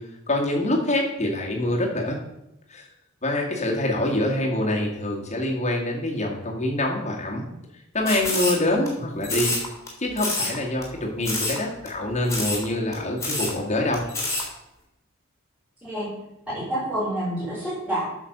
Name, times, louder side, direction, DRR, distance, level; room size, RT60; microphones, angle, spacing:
voice 1, 0.3-2.2 2.7-2.9 3.2-7.4 7.9-9.6 10.0-14.0, left 1 dB, 35° left, -1 dB, 2.2 m, -25 dB
sound 1, 8.1-8.9 9.2-9.9 10.2-10.6 10.8-10.9 11.2-11.6 11.9-12.0 12.3-12.6 12.9-13.0 13.2-13.5 13.9-14.4, left 2 dB, 15° left, 3.3 m, -27 dB
voice 2, 16.5-18.0, right 1 dB, 5° right, -11 dB, 4.4 m, -28 dB
8.8 x 6.5 x 6.7 m, 0.87 s
head